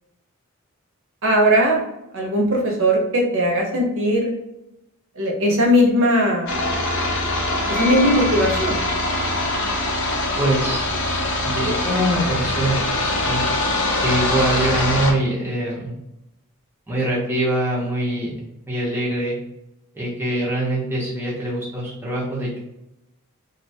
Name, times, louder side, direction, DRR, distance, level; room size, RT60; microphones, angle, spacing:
voice 1, 1.2-1.8 2.1-4.3 5.2-6.6 7.7-8.8, equal, 60° right, 0 dB, 0.6 m, -19 dB
police chopper cricket, 6.5-15.1, left 2 dB, 55° left, 0.5 m, -23 dB
sound 1, 7.7-11.5, left 2 dB, 85° left, 0.9 m, -36 dB
voice 2, 10.4-10.9 11.4-13.4 14.0-15.9 16.9-18.4 18.7-19.4 19.9-22.6, right 1 dB, 10° right, -6 dB, 0.6 m, -23 dB
2.5 x 2.1 x 2.7 m, 0.88 s
head